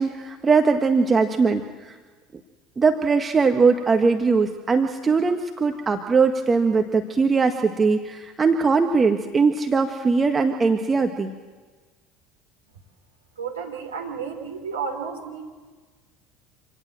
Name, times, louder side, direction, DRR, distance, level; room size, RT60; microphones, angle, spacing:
voice 1, 0.0-2.0 2.8-11.3, right 4 dB, 25° right, 5 dB, 1.6 m, -20 dB
voice 2, 13.4-15.5, right 6 dB, 80° right, 2 dB, 3.6 m, -32 dB
27.0 x 18.5 x 7.6 m, 1.4 s
figure-of-eight pair, 65°, 0 cm